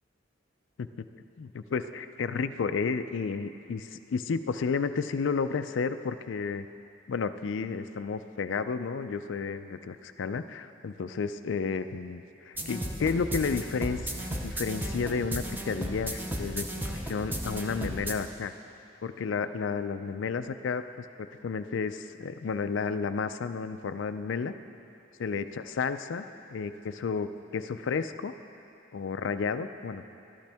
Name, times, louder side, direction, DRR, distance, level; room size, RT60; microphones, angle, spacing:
voice 1, 1.4-6.7 7.1-14.0 14.3-18.5 19.0-20.8 21.2-24.5 25.2-26.2 26.5-28.3 28.9-30.0, left 5 dB, 70° left, 11 dB, 0.4 m, -32 dB
sound 1, 12.6-18.1, right 1 dB, 10° right, 0.7 m, -35 dB
12.0 x 12.0 x 3.5 m, 2.7 s
head